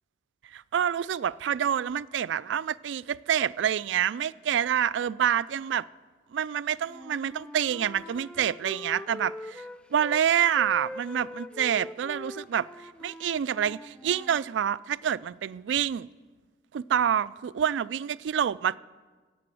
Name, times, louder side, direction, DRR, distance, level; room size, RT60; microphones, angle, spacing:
voice 1, 0.5-5.9 6.3-9.6 9.9-12.7 13.0-16.1 16.7-18.8, right 9 dB, 90° right, 0.3 m, -27 dB
Wind instrument woodwind instrument, 6.8-10.2 10.5-14.4, left 1 dB, 5° left, 0.3 m, -43 dB
17.0 x 6.9 x 7.6 m
head